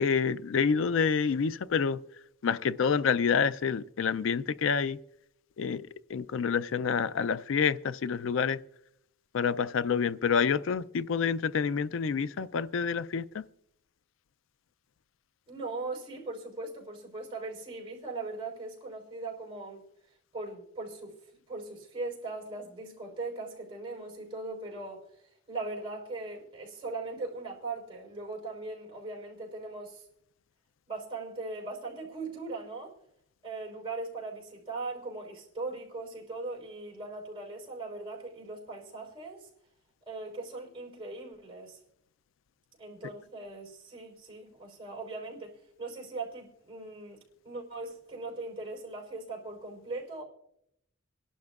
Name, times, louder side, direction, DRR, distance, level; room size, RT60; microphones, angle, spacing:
voice 1, 0.0-2.0 2.4-5.0 5.6-8.6 9.3-13.4, left 6 dB, 65° left, 0.4 m, -28 dB
voice 2, 15.5-19.8 20.3-25.1 25.5-30.1 30.9-33.0 33.4-39.5 40.1-41.8 42.8-45.5 45.8-50.2, right 3 dB, 25° right, 4.1 m, -39 dB
26.5 x 11.5 x 2.4 m
head